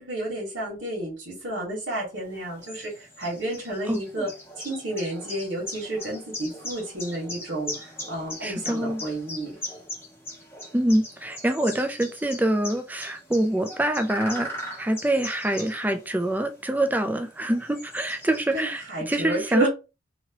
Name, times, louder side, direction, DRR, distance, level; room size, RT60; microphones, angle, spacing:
voice 1, 0.0-4.3 4.6-9.5 18.5-19.7, right 1 dB, 75° right, 1.5 m, -31 dB
sound 1, 2.2-18.8, left 1 dB, 10° left, 0.8 m, -40 dB
voice 2, 3.9-4.3 8.4-9.0 10.7-14.5 14.8-19.7, right 1 dB, 10° right, 0.4 m, -25 dB
2.9 x 2.8 x 2.9 m
head